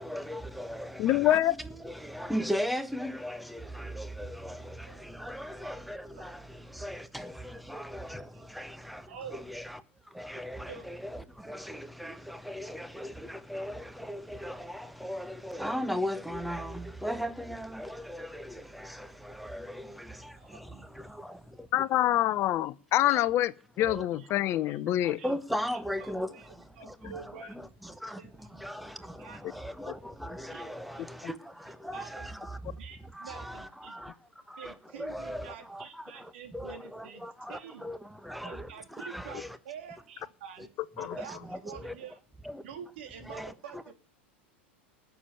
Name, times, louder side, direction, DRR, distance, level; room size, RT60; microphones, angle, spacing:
voice 1, 0.0-9.8 10.1-21.4 23.0-23.2 23.8-24.1 25.0-26.4 26.8-32.6 33.1-34.1 34.5-39.6 41.0-41.9 42.4-42.6 43.2-43.9, equal, ahead, 1.3 m, -38 dB
voice 2, 1.0-1.5 21.7-23.5 23.8-25.2 41.0-41.1, left 13 dB, 45° left, 0.8 m, -25 dB
voice 3, 9.1-9.5 10.7-10.9 19.9-21.2 22.3-22.6 23.1-23.5 24.1-24.3 24.7-24.8 25.1-25.3 26.0-28.7 29.2-29.6 30.5-30.7 30.9-31.0 31.9-32.3 32.8-34.0 34.6-37.9 38.4-40.7 41.0-42.2 42.6-43.9, right 8 dB, 70° right, 3.1 m, -48 dB
18.5 x 7.3 x 9.0 m
hypercardioid pair, 90°, 6 cm